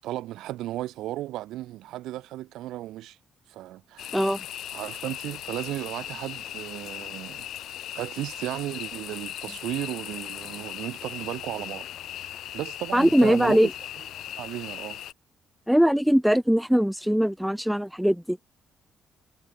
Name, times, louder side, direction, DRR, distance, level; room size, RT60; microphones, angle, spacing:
voice 1, 0.0-3.2 3.5-4.2 4.7-7.5 7.9-11.9 12.1-13.7 14.4-15.0, right 15 dB, 90° right, 7.1 m, -35 dB
sound 1, 4.0-15.1, left 12 dB, 75° left, 5.0 m, -38 dB
voice 2, 4.1-4.4 12.9-13.7 15.7-18.4, equal, ahead, 2.8 m, -21 dB
cardioid pair, 90°, 0 cm